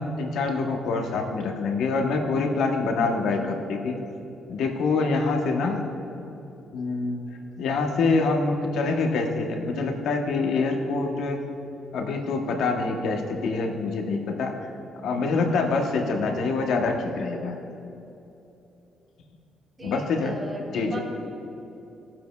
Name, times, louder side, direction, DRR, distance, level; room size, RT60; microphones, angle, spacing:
voice 1, 0.0-4.0 4.5-5.8 6.7-7.2 7.6-11.4 11.9-14.6 15.0-17.6 19.8-20.4 20.7-21.0, left 3 dB, 75° left, 3 dB, 0.9 m, -25 dB
voice 2, 19.8-21.0, equal, 25° right, 0 dB, 1.2 m, -37 dB
14.5 x 7.4 x 2.3 m, 2.9 s
cardioid pair, 90°, 0 cm